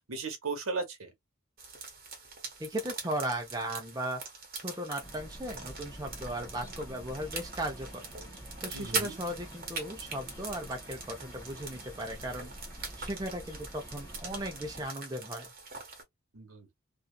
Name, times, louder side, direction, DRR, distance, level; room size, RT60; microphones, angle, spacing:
voice 1, 0.1-1.1 8.7-9.1 16.3-16.7, right 4 dB, 80° right, 0.9 m, -36 dB
sound 1, 1.6-16.0, right 4 dB, 45° right, 0.9 m, -42 dB
voice 2, 2.6-4.2 4.5-8.0 8.6-12.5 13.0-15.5, right 1 dB, 15° right, 0.5 m, -37 dB
sound 2, 5.0-14.9, equal, 15° left, 0.9 m, -48 dB
2.6 x 2.3 x 2.2 m
head